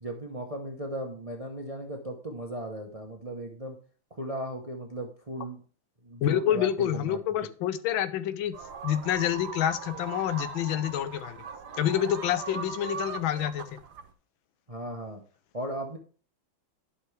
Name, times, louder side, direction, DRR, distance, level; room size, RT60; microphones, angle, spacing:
voice 1, 0.0-3.8 4.1-5.6 6.0-7.2 14.7-15.2 15.5-16.0, right 1 dB, 35° right, 2 dB, 0.6 m, -36 dB
voice 2, 6.2-8.5 8.8-11.4 11.8-13.8, left 10 dB, 85° left, 13 dB, 1.5 m, -28 dB
sound 1, 8.5-14.1, right 5 dB, 60° right, 1.4 m, -40 dB
11.5 x 5.6 x 3.3 m, 0.40 s
omnidirectional pair, 2.1 m